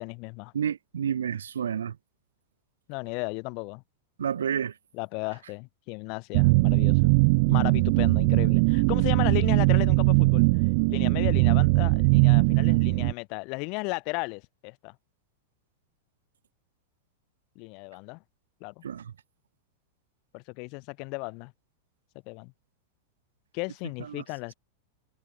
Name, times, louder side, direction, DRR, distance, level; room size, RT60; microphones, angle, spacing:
voice 1, 0.0-0.5 2.9-3.8 4.9-7.1 7.5-10.5 10.9-15.0 17.6-18.2 18.6-18.8 20.3-21.5 22.3-22.5 23.5-24.5, left 32 dB, 45° left, 4.2 m, -35 dB
voice 2, 0.5-2.0 4.2-4.7 18.8-19.1 24.0-24.2, right 8 dB, 65° right, 1.1 m, -30 dB
sound 1, 6.3-13.1, right 30 dB, 45° right, 0.4 m, -21 dB
figure-of-eight pair, 90°, 0 cm